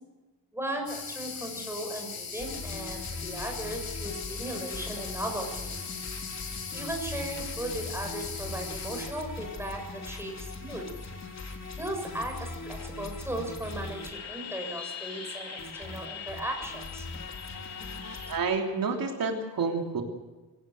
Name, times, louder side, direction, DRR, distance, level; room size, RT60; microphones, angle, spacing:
voice 1, 0.5-5.8 6.7-10.9 11.8-17.1, right 1 dB, 5° right, 2 dB, 7.1 m, -37 dB
sound 1, 0.9-9.1, left 6 dB, 80° left, 5.1 m, -39 dB
sound 2, 2.4-18.4, left 3 dB, 50° left, 3.6 m, -40 dB
voice 2, 18.3-20.0, right 4 dB, 70° right, 2 dB, 3.4 m, -29 dB
24.5 x 18.0 x 7.9 m, 1.2 s
wide cardioid pair, 110°, 35 cm